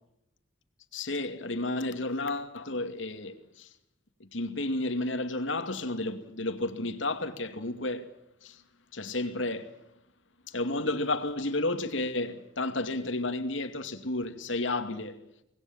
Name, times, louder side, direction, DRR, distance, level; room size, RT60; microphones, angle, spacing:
voice 1, 0.9-3.7 4.2-8.1 8.4-8.6 8.9-9.7 10.5-15.2, left 2 dB, 85° left, 2.6 m, -32 dB
25.5 x 20.5 x 7.4 m
head